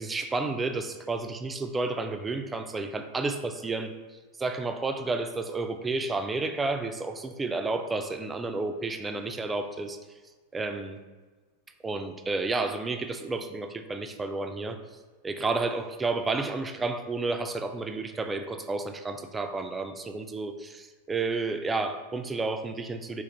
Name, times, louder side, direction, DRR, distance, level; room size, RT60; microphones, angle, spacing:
voice 1, 0.0-10.0 10.5-11.0 11.8-14.8 15.2-23.2, right 3 dB, 15° right, 7 dB, 0.3 m, -31 dB
4.1 x 2.5 x 3.8 m, 1.3 s
figure-of-eight pair, 90°, 0 cm